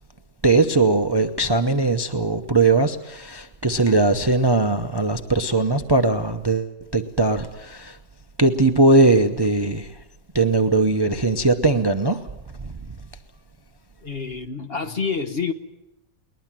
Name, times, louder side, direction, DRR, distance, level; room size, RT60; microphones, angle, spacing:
voice 1, 0.4-8.0 8.4-9.9 10.3-12.2 12.6-12.7, right 3 dB, 20° right, 8 dB, 0.7 m, -20 dB
voice 2, 14.0-15.5, left 5 dB, 45° left, 8 dB, 1.2 m, -27 dB
21.5 x 20.5 x 7.5 m, 0.91 s
omnidirectional pair, 1.5 m